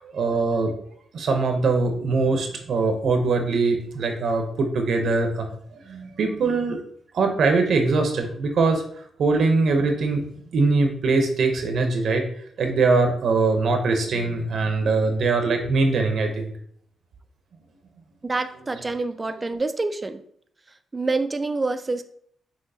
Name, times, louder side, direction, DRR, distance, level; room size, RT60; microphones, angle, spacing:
voice 1, 0.0-0.7 1.1-6.8 7.1-8.8 9.2-10.2 10.5-12.3 12.6-16.5, right 3 dB, 65° right, 4 dB, 0.7 m, -22 dB
voice 2, 18.2-20.2 20.9-22.0, right 3 dB, 20° right, 9 dB, 0.4 m, -26 dB
5.9 x 2.9 x 2.7 m, 0.63 s
cardioid pair, 105°, 0 cm